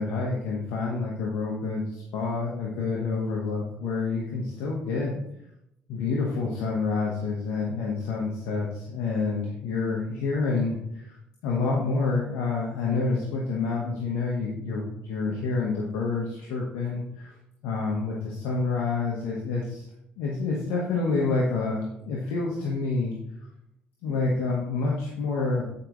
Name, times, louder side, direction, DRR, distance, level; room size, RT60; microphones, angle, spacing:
voice 1, 0.0-5.2 5.9-11.0 11.4-17.3 17.6-19.9 20.2-23.1 24.0-25.6, left 4 dB, 85° left, -3 dB, 1.4 m, -28 dB
9.4 x 5.2 x 3.2 m, 0.78 s
supercardioid pair, 80°, 4 cm